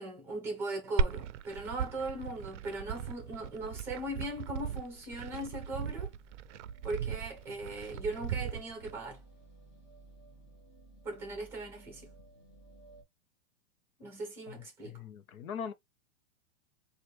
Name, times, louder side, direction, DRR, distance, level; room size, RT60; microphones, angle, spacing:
voice 1, 0.0-6.1 6.8-9.2 11.0-12.1 14.0-15.0, right 2 dB, 5° right, 0.8 m, -39 dB
Glass, 1.0-8.9, right 7 dB, 60° right, 0.5 m, -37 dB
sound 1, 1.5-13.0, right 2 dB, 35° left, 2.2 m, -57 dB
voice 2, 14.5-15.7, left 7 dB, 85° left, 0.9 m, -41 dB
4.4 x 2.5 x 3.1 m
supercardioid pair, 180°, 41 cm